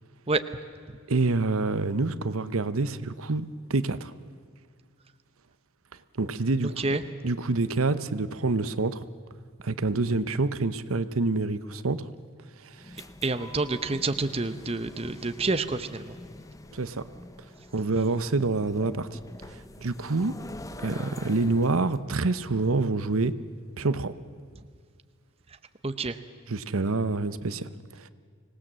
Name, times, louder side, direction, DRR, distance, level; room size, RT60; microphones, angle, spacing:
voice 1, 1.1-4.1 6.2-6.8 7.2-9.0 9.6-12.0 12.6-13.0 16.7-17.0 17.7-19.1 19.5-20.3 20.8-23.3 23.8-24.1 26.5-28.1, right 3 dB, 80° right, 13 dB, 0.9 m, -27 dB
sound 1, 12.7-22.0, left 1 dB, 15° left, 0.6 m, -45 dB
voice 2, 13.2-16.2 25.8-26.2, right 3 dB, 25° right, 10 dB, 0.8 m, -28 dB
25.5 x 19.0 x 7.5 m, 2.1 s
head